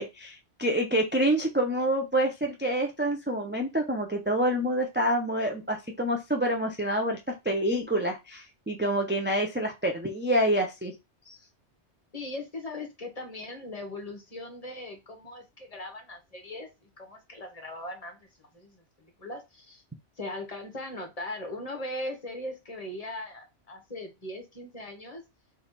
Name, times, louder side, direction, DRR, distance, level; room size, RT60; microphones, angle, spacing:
voice 1, 0.0-7.2 7.4-10.9 11.3-11.4, right 1 dB, 15° right, 2 dB, 0.4 m, -27 dB
voice 2, 12.1-16.7 17.0-18.3 18.5-19.8 20.2-25.2, left 1 dB, 35° left, 3 dB, 1.2 m, -39 dB
3.6 x 3.4 x 4.0 m, 0.24 s
omnidirectional pair, 1.2 m